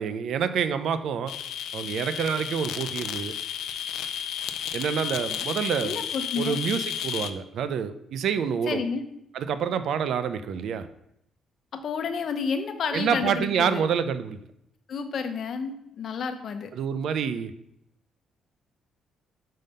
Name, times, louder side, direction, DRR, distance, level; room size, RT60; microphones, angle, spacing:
voice 1, 0.0-1.3 1.7-3.3 4.7-6.0 6.4-8.8 9.3-10.9 12.9-14.4 16.8-17.5, right 7 dB, 70° right, 11 dB, 0.5 m, -27 dB
sound 1, 1.3-7.3, left 9 dB, 80° left, 0.5 m, -33 dB
voice 2, 5.8-6.6 8.7-9.0 11.7-13.8 14.9-16.7, left 5 dB, 55° left, 8 dB, 0.8 m, -30 dB
5.5 x 5.4 x 5.4 m, 0.79 s
cardioid pair, 100°, 0 cm